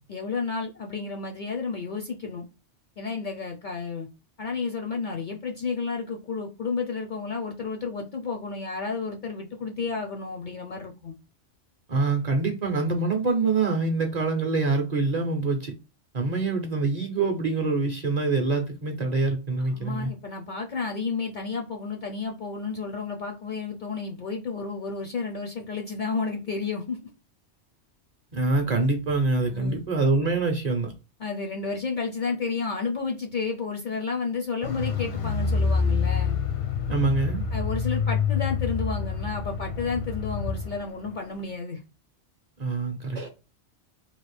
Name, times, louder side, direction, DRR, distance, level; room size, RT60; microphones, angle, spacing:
voice 1, 0.1-2.4 3.0-4.1 4.4-11.2 19.6-27.0 29.5-29.9 31.2-36.4 37.5-41.8, left 4 dB, 55° left, 0.5 m, -31 dB
voice 2, 11.9-15.7 16.1-20.1 28.3-30.9 36.9-37.4 42.6-43.3, right 3 dB, 50° right, 0.6 m, -25 dB
Car, 34.6-40.8 41.1-41.2, left 5 dB, 80° left, 1.0 m, -27 dB
3.1 x 2.4 x 3.2 m
omnidirectional pair, 1.2 m